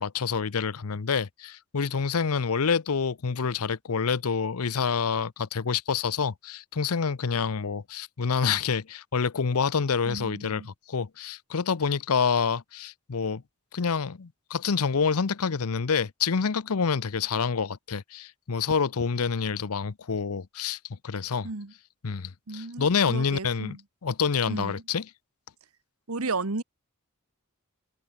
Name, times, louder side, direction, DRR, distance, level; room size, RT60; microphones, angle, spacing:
voice 1, 0.0-13.4 13.7-20.8 21.0-21.5 22.0-23.8 24.0-25.0, left 5 dB, 85° left, 0.7 m, -27 dB
voice 2, 10.1-10.7 21.4-21.7 22.5-23.8 24.5-24.8 26.1-26.6, right 3 dB, 80° right, 1.5 m, -34 dB
head